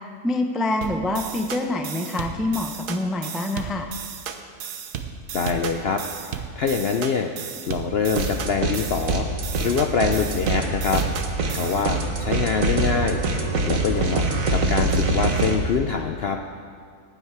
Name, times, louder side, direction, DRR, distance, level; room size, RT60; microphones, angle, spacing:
voice 1, 0.2-3.9, left 2 dB, ahead, 4 dB, 0.3 m, -26 dB
sound 1, 0.8-11.8, right 7 dB, 85° right, 1.4 m, -34 dB
voice 2, 5.3-7.3 7.7-9.3 9.6-11.0 11.5-13.2 13.7-16.4, left 5 dB, 60° left, 5 dB, 0.6 m, -25 dB
sound 2, 8.1-8.8 9.1-15.5, right 2 dB, 60° right, 1.6 m, -24 dB
18.5 x 9.3 x 4.7 m, 2.1 s
omnidirectional pair, 1.6 m